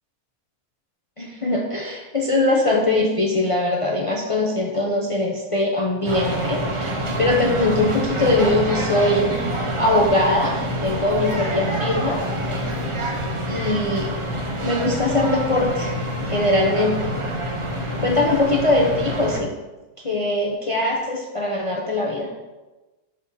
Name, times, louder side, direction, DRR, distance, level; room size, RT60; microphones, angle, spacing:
voice 1, 1.2-6.9 7.2-9.3 9.8-10.6 10.8-12.2 13.5-14.1 14.6-15.9 16.2-17.1 17.9-19.5 20.0-22.3, left 2 dB, 60° left, -2 dB, 0.3 m, -21 dB
sound 1, 6.0-19.4, right 1 dB, 40° right, 0.4 m, -26 dB
6.4 x 3.7 x 5.3 m, 1.1 s
omnidirectional pair, 1.6 m